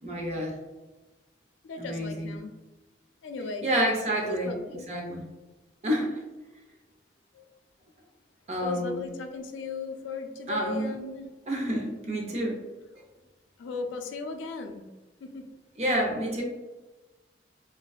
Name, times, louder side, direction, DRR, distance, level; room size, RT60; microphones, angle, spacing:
voice 1, 0.0-0.6 1.8-2.4 3.6-4.6 4.9-5.2 5.8-6.1 8.5-9.0 10.5-10.9 11.5-12.6 15.8-16.4, right 1 dB, 35° right, 0 dB, 0.5 m, -28 dB
voice 2, 1.6-2.5 3.2-3.7 4.2-4.8 7.3-7.4 8.6-11.3 13.6-14.8 15.2-15.4, left 4 dB, 80° left, 5 dB, 0.3 m, -36 dB
2.5 x 2.1 x 2.3 m, 1.1 s
head